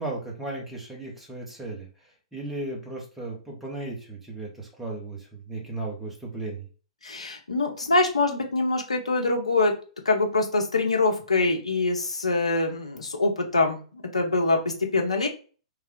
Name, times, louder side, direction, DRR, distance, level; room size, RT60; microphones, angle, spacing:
voice 1, 0.0-6.7, right 2 dB, 5° right, -1 dB, 1.0 m, -36 dB
voice 2, 7.0-9.7 10.0-15.3, left 3 dB, 75° left, 1 dB, 0.8 m, -24 dB
3.3 x 2.3 x 3.6 m, 0.37 s
figure-of-eight pair, 110°, 3 cm